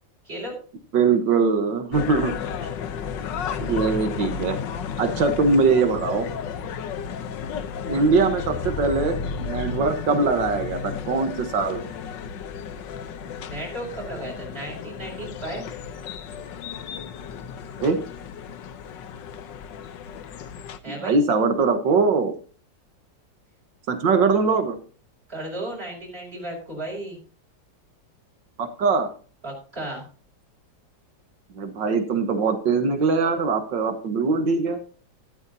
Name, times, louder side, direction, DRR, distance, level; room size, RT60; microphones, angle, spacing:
voice 1, 0.2-0.6 13.5-15.6 20.8-21.2 25.3-27.2 29.4-30.0, right 1 dB, 30° right, -2 dB, 5.9 m, -34 dB
voice 2, 0.9-2.3 3.6-4.6 5.0-6.3 7.9-11.8 17.8-18.0 20.9-22.4 23.9-24.8 28.6-29.1 31.6-34.8, right 4 dB, 75° right, 8 dB, 2.0 m, -22 dB
sound 1, 1.9-20.8, left 6 dB, 75° left, 1.6 m, -33 dB
13.0 x 12.5 x 2.8 m, 0.39 s
omnidirectional pair, 2.0 m